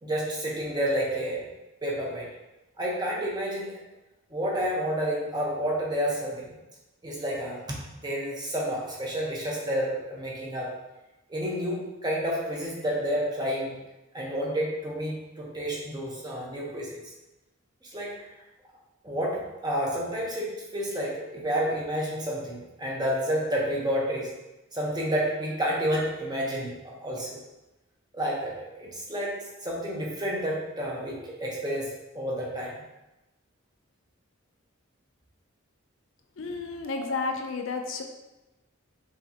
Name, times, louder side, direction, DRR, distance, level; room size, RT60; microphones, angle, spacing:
voice 1, 0.0-1.4 1.8-2.3 2.8-3.8 4.3-6.5 7.0-7.6 8.0-10.7 11.3-13.8 14.1-17.0 17.9-18.1 19.0-24.3 24.7-27.4 28.1-28.5 28.8-29.3 29.6-32.7 36.4-36.5 37.0-37.1, equal, 20° right, -4 dB, 0.9 m, -30 dB
voice 2, 36.4-38.0, left 4 dB, 65° left, 4 dB, 0.5 m, -31 dB
5.5 x 3.3 x 2.8 m, 1.0 s
head